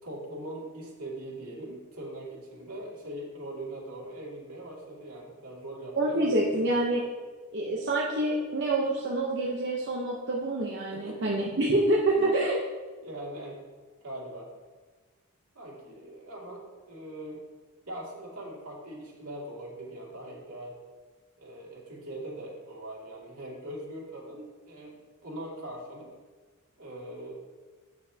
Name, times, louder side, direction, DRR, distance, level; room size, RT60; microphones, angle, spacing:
voice 1, 0.0-6.6 11.0-11.5 12.1-12.3 13.0-13.6 14.0-14.5 15.5-17.4 17.9-20.8 21.4-25.0 25.2-26.1 26.8-27.3, right 1 dB, 75° right, -4 dB, 2.4 m, -41 dB
voice 2, 6.0-7.0 7.5-12.6, right 2 dB, 50° right, -3 dB, 0.8 m, -27 dB
8.9 x 7.0 x 2.8 m, 1.4 s
head